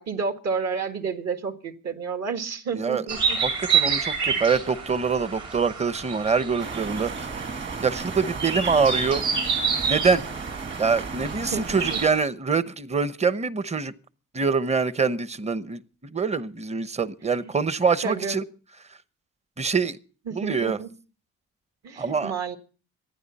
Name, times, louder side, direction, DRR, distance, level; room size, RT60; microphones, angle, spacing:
voice 1, 0.0-3.4 11.5-12.0 17.4-17.5 18.0-18.4 20.3-20.9 21.8-22.6, right 5 dB, 60° right, 1.9 m, -30 dB
voice 2, 2.7-3.0 3.4-7.1 7.8-9.2 9.9-10.2 10.8-13.9 14.3-15.8 16.1-18.4 19.6-20.0 20.3-20.8 22.0-22.3, right 5 dB, 20° right, 0.9 m, -24 dB
sound 1, 3.1-12.2, right 6 dB, 80° right, 6.9 m, -29 dB
sound 2, 6.6-12.1, right 4 dB, 40° right, 1.8 m, -34 dB
26.0 x 9.8 x 4.2 m
cardioid pair, 90°, 30 cm